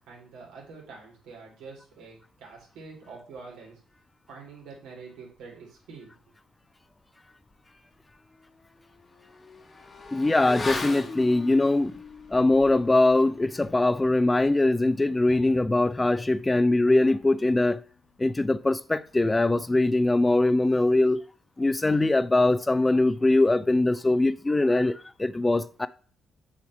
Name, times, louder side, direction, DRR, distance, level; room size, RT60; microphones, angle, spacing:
voice 1, 0.0-3.8 4.3-6.1, right 4 dB, 85° right, 3.1 m, -46 dB
Motorcycle / Accelerating revving vroom, 7.5-7.6 8.0-18.0 18.3-18.4, left 3 dB, 35° left, 1.3 m, -41 dB
voice 2, 10.1-11.9 12.3-17.8 18.2-21.2 21.6-25.9, left 2 dB, 15° left, 0.4 m, -22 dB
7.2 x 3.2 x 6.0 m
cardioid pair, 80°, 0 cm